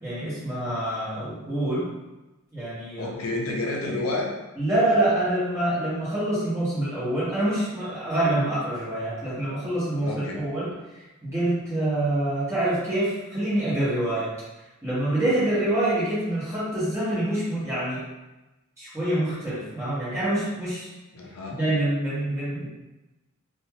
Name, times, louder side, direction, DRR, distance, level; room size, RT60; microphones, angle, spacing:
voice 1, 0.0-1.9 2.5-3.2 4.6-10.7 11.2-14.3 14.8-18.0 18.8-20.9 21.5-22.7, right 1 dB, 15° right, -11 dB, 1.3 m, -26 dB
voice 2, 3.0-4.3 10.0-10.4 21.1-21.6, left 2 dB, 75° left, -1 dB, 0.5 m, -29 dB
2.8 x 2.4 x 2.8 m, 1.0 s
head